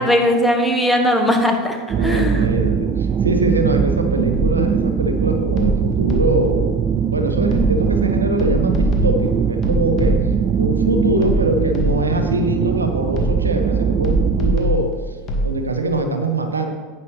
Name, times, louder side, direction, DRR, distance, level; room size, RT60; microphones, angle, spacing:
voice 1, 0.0-2.5, equal, 5° left, 3 dB, 1.2 m, -18 dB
sound 1, 1.9-14.6, right 7 dB, 35° right, 0.4 m, -21 dB
voice 2, 2.0-6.7 7.1-10.2 10.6-15.2 15.4-16.7, right 2 dB, 90° right, 6 dB, 0.9 m, -23 dB
sound 2, 4.3-4.9 5.6-6.6 7.5-8.0 8.4-10.5 11.2-12.3 13.2-13.7 14.0-15.5, right 1 dB, 40° left, 1.8 m, -23 dB
9.7 x 9.1 x 3.3 m, 1.4 s
hypercardioid pair, 85°, 0 cm